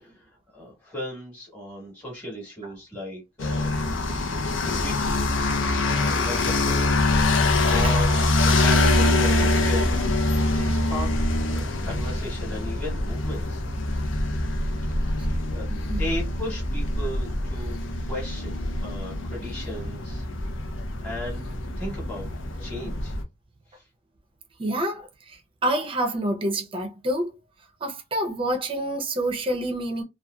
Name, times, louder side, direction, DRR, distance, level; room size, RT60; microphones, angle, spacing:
voice 1, 0.5-3.7 4.8-5.1 5.9-6.8 7.6-10.2 10.5-13.6 15.0-17.7 18.1-20.3 21.0-22.3 22.6-23.2 23.7-23.8, left 1 dB, 5° left, 1.1 m, -36 dB
sound 1, 3.4-23.2, left 2 dB, 70° left, 0.6 m, -24 dB
voice 2, 15.7-16.0 24.6-27.4 27.8-30.0, right 1 dB, 25° right, 0.5 m, -28 dB
2.9 x 2.3 x 2.2 m
head